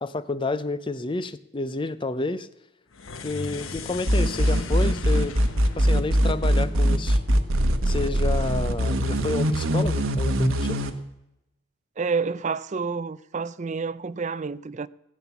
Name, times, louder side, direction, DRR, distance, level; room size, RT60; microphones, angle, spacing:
voice 1, 0.0-2.5 3.2-5.4 5.8-7.2 7.9-10.8, left 2 dB, 25° left, 0.6 m, -30 dB
sound 1, 2.9-7.3, left 4 dB, 75° left, 1.0 m, -38 dB
sound 2, 4.1-10.9, equal, 75° right, 1.2 m, -22 dB
voice 2, 12.0-14.9, right 5 dB, 35° right, 0.4 m, -29 dB
15.5 x 8.6 x 7.1 m
head